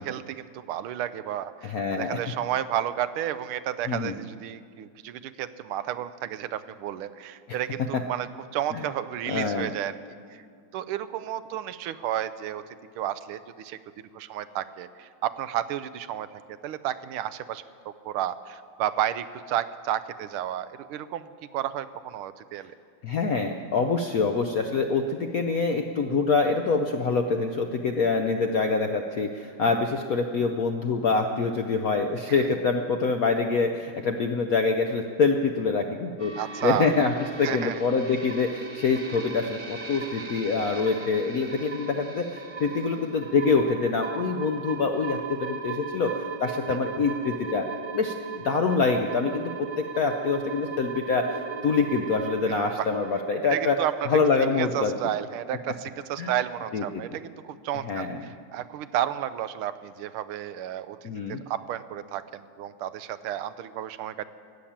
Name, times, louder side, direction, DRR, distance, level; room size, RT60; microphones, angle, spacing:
voice 1, 0.0-8.3 8.5-10.0 10.3-10.4 10.7-12.6 13.0-13.8 14.1-22.7 32.3-32.5 36.4-36.9 37.4-37.7 46.7-46.8 52.5-52.9 53.5-54.1 54.5-64.3, right 11 dB, 85° right, 13 dB, 1.5 m, -32 dB
voice 2, 1.6-2.2 3.9-4.1 7.9-8.0 8.7-8.8 9.3-9.7 23.0-36.3 36.6-37.1 37.4-47.7 47.9-53.8 54.0-54.9 56.2-56.3 56.7-56.8 57.8-58.2 61.0-61.4, left 4 dB, 70° left, 4 dB, 0.8 m, -25 dB
sound 1, 36.2-54.1, right 5 dB, 35° right, 0.8 m, -38 dB
16.5 x 7.3 x 10.0 m, 2.2 s
omnidirectional pair, 2.3 m